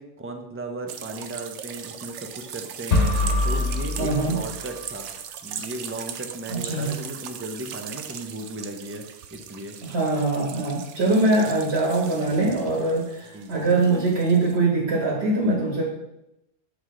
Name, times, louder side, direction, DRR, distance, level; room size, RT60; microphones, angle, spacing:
voice 1, 0.0-5.1 5.4-9.0 9.3-9.8 11.4-11.5 13.3-13.7, right 2 dB, 15° right, 4 dB, 0.5 m, -36 dB
sound 1, 0.9-14.6, right 8 dB, 90° right, 0.9 m, -39 dB
sound 2, 2.9-4.9, left 2 dB, 90° left, 1.5 m, -24 dB
voice 2, 4.0-4.4 6.5-6.9 9.8-15.8, right 2 dB, 65° right, -2 dB, 1.6 m, -23 dB
7.5 x 4.8 x 3.7 m, 0.88 s
omnidirectional pair, 1.2 m